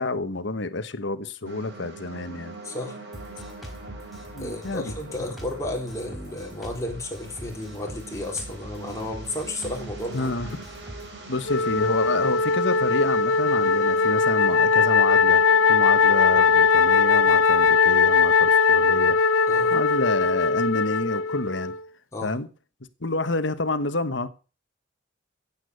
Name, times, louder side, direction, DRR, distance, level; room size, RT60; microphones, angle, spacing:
voice 1, 0.0-2.5 4.3-4.9 10.1-10.5 11.3-15.4 15.7-19.2 19.7-21.7 22.2-22.5 23.0-24.3, left 2 dB, 65° left, 1.2 m, -28 dB
sound 1, 1.4-16.7, right 2 dB, 55° right, 5.7 m, -44 dB
voice 2, 2.6-3.0 4.4-10.3 19.5-19.7 22.1-22.4, left 1 dB, 15° left, 3.7 m, -33 dB
Drum kit, 3.1-11.1, equal, ahead, 4.4 m, -42 dB
Wind instrument woodwind instrument, 11.5-21.8, left 5 dB, 80° left, 0.6 m, -20 dB
16.0 x 8.5 x 6.7 m
head